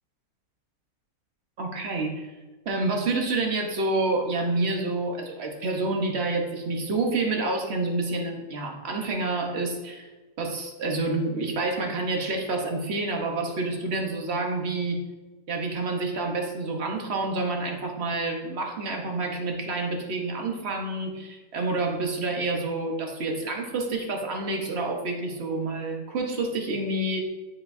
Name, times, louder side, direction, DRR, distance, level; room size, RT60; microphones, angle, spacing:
voice 1, 1.6-2.3 2.6-10.1 10.4-15.0 15.5-27.2, right 2 dB, 50° right, 2 dB, 1.0 m, -28 dB
10.0 x 4.0 x 2.6 m, 1.2 s
omnidirectional pair, 1.6 m